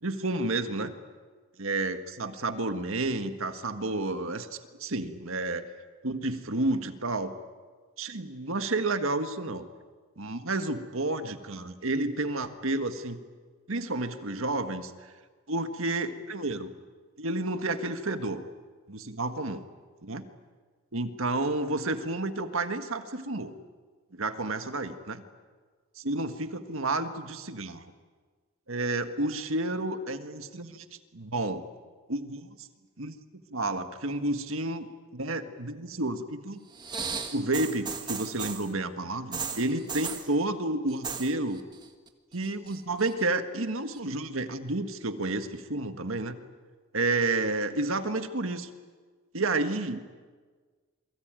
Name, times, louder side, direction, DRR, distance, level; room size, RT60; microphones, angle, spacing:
voice 1, 0.0-0.9 1.6-5.6 6.0-7.3 8.0-9.6 10.2-13.2 13.7-15.1 15.5-16.7 17.2-18.4 18.9-19.7 20.0-20.3 20.9-23.5 24.1-25.2 26.0-27.8 28.7-30.8 31.1-31.6 32.1-32.5 33.0-33.1 33.5-34.9 35.1-36.6 37.3-41.7 42.3-46.4 46.9-48.7 49.3-50.0, right 2 dB, 70° right, 8 dB, 1.7 m, -30 dB
sound 1, 36.7-38.7 39.3-40.3 40.9-41.3 41.6-42.1 42.4-43.2 44.0-44.1, right 5 dB, 20° right, 1.7 m, -36 dB
28.0 x 23.0 x 9.1 m, 1.5 s
head